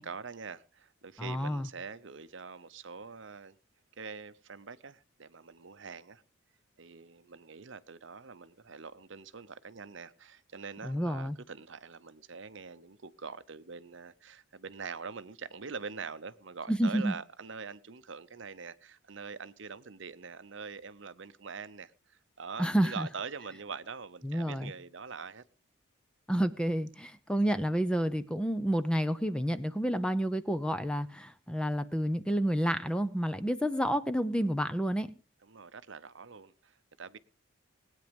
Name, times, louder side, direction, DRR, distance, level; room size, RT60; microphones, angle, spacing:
voice 1, 0.0-3.6 4.0-6.2 6.8-25.4 35.4-37.2, right 5 dB, 65° right, 0.8 m, -44 dB
voice 2, 1.2-1.7 10.8-11.4 16.7-17.1 22.6-23.1 24.2-24.7 26.3-35.1, equal, 5° left, 0.7 m, -29 dB
19.5 x 9.3 x 5.3 m
head